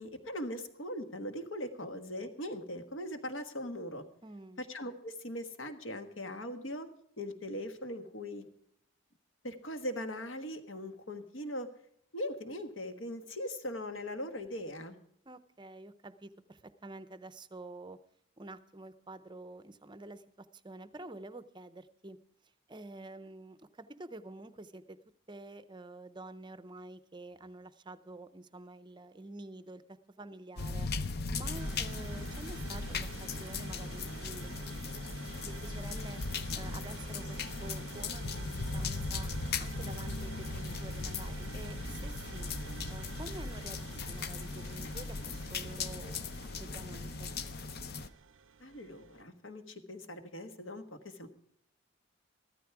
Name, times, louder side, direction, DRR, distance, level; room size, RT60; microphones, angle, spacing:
voice 1, 0.0-4.0 4.6-6.9 7.2-8.5 9.4-11.7 12.1-15.0 48.6-51.3, left 1 dB, 65° left, 8 dB, 1.4 m, -40 dB
voice 2, 4.2-4.6 15.3-18.0 18.4-22.2 22.4-25.0 25.3-34.6 35.4-36.2 36.5-39.3 39.6-42.5 42.9-46.3 46.6-47.3, right 2 dB, 20° right, 13 dB, 0.6 m, -48 dB
sound 1, 30.6-48.1, left 3 dB, 50° left, 0.7 m, -38 dB
sound 2, 31.4-49.2, right 5 dB, 65° right, 0.5 m, -49 dB
14.0 x 13.0 x 4.7 m, 0.70 s
head